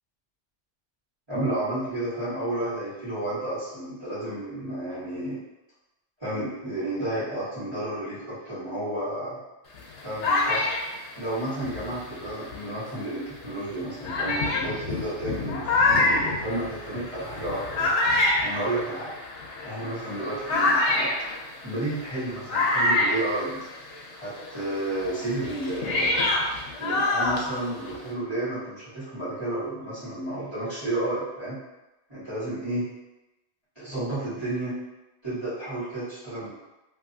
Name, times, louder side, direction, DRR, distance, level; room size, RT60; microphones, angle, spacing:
voice 1, 1.3-5.4 6.2-9.4 10.0-10.7 11.2-17.9 18.4-19.1 19.6-21.1 21.6-23.7 24.2-26.3 26.8-31.6 32.1-32.8 33.7-34.8 35.2-36.5, right 1 dB, 25° right, -14 dB, 1.5 m, -31 dB
sound 1, 9.7-12.8 13.4-13.5 14.0-24.1 24.4-28.1, left 2 dB, 85° left, 0.9 m, -26 dB
2.8 x 2.6 x 2.6 m, 1.0 s
omnidirectional pair, 1.2 m